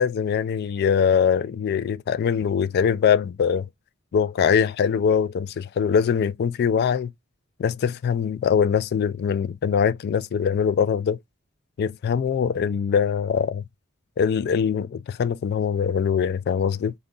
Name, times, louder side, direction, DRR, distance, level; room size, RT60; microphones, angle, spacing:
voice 1, 0.0-3.7 4.1-7.1 7.6-11.2 11.8-13.6 14.2-16.9, left 7 dB, 50° left, 0.3 m, -22 dB
2.8 x 2.5 x 3.7 m
head